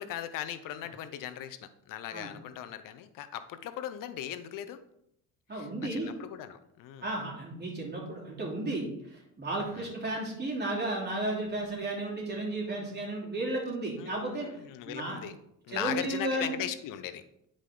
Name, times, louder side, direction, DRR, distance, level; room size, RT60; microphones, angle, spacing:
voice 1, 0.0-4.8 5.5-7.1 9.7-9.9 14.0-15.4 15.6-17.2, left 11 dB, 85° left, 11 dB, 0.7 m, -38 dB
voice 2, 5.5-6.1 7.0-14.5 14.9-15.2 15.7-16.5, right 2 dB, 30° right, -3 dB, 3.0 m, -33 dB
10.5 x 5.0 x 3.8 m, 0.78 s
cardioid pair, 115°, 32 cm